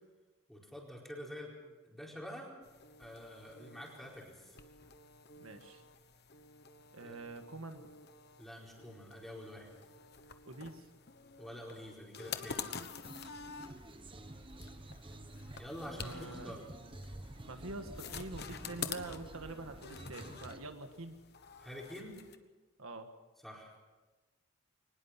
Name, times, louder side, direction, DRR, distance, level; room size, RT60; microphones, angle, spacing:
voice 1, 0.5-1.5 1.8-2.5 3.0-4.6 7.0-7.2 8.4-9.7 11.4-12.7 15.5-16.6 21.6-22.2 23.4-23.7, equal, ahead, -2 dB, 4.6 m, -47 dB
sound 1, 2.6-22.4, left 6 dB, 50° left, 1.2 m, -49 dB
voice 2, 5.4-5.8 6.9-7.8 10.5-10.9 15.9-16.6 17.5-21.2 22.8-23.1, right 2 dB, 80° right, 7 dB, 1.6 m, -45 dB
sound 2, 13.0-20.6, right 1 dB, 25° right, 1.0 m, -50 dB
23.0 x 20.0 x 5.9 m, 1.3 s
head